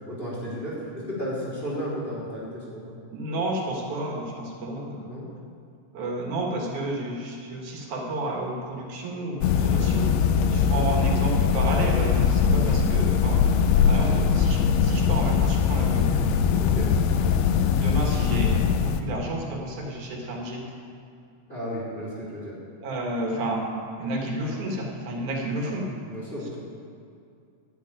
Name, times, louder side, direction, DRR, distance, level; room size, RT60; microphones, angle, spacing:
voice 1, 0.1-3.0 5.1-5.2 10.5-10.9 16.6-16.9 21.5-22.5 26.1-26.5, equal, 15° left, -8 dB, 2.7 m, -34 dB
voice 2, 3.1-5.1 5.9-10.1 10.5-13.5 13.9-16.1 17.7-18.5 18.8-20.6 22.8-23.6 24.0-25.9, right 1 dB, 75° right, -1 dB, 2.9 m, -31 dB
sound 1, 9.4-19.0, left 6 dB, 75° left, 1.6 m, -21 dB
12.0 x 5.7 x 8.9 m, 2.4 s
omnidirectional pair, 3.5 m